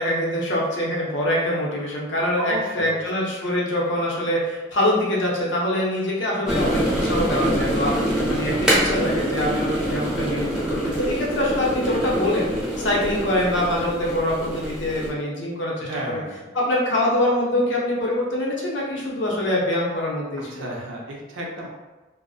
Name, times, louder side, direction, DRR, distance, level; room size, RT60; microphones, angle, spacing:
voice 1, 0.0-16.2 16.5-20.7, left 1 dB, 60° left, -4 dB, 0.6 m, -24 dB
voice 2, 2.4-3.1 15.8-16.5 20.5-21.7, right 1 dB, 65° right, -1 dB, 0.5 m, -32 dB
sound 1, 6.5-15.1, equal, 5° right, 0.4 m, -25 dB
2.3 x 2.0 x 2.6 m, 1.2 s
head